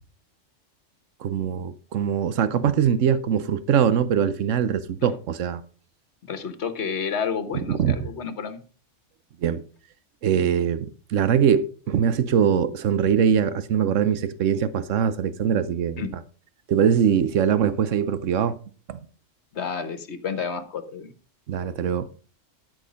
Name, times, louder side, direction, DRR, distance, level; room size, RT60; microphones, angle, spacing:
voice 1, 1.2-5.6 7.5-8.1 9.4-9.6 10.2-16.0 16.7-18.6 18.9-19.0 21.5-22.1, right 8 dB, 80° right, 1.2 m, -22 dB
voice 2, 6.2-8.6 16.0-16.1 19.5-21.1, left 6 dB, 60° left, 1.5 m, -30 dB
13.0 x 6.4 x 5.1 m
omnidirectional pair, 1.3 m